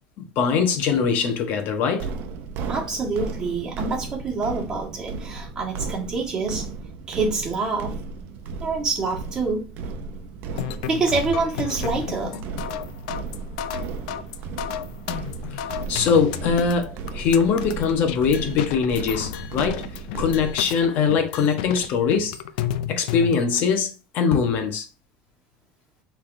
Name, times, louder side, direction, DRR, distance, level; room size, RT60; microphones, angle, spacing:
voice 1, 0.4-2.1 15.5-15.6 15.9-22.3 22.9-24.8, left 6 dB, 45° left, 1.0 m, -22 dB
sound 1, 2.0-20.6, right 4 dB, 50° right, 0.6 m, -35 dB
voice 2, 2.7-6.7 7.1-8.0 8.6-9.7 10.9-12.5, right 3 dB, 20° right, 1.6 m, -26 dB
sound 2, 10.5-23.6, left 11 dB, 90° left, 0.4 m, -32 dB
5.5 x 3.4 x 2.6 m
cardioid pair, 160°, 4 cm